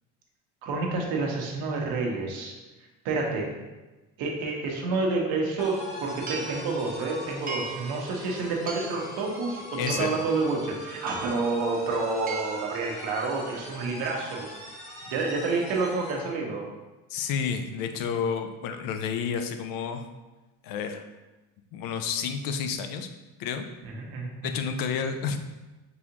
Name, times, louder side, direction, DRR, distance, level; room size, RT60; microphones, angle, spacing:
voice 1, 0.6-2.5 3.0-3.5 4.2-14.5 15.1-16.7 23.8-24.6, right 3 dB, 85° right, 0 dB, 1.0 m, -29 dB
sound 1, 5.5-5.6 6.3-6.7 7.5-7.9 8.7-9.1 9.9-10.3 11.1-11.5 12.3-12.7, right 4 dB, 25° right, 0.4 m, -37 dB
sound 2, 5.6-16.3, left 1 dB, 20° left, 1.1 m, -41 dB
voice 2, 9.8-10.1 17.1-20.1 20.6-21.0 21.7-23.1 23.4-23.7 24.4-25.4, left 6 dB, 75° left, 7 dB, 0.5 m, -30 dB
4.0 x 3.5 x 2.9 m, 1.1 s
cardioid pair, 130°, 34 cm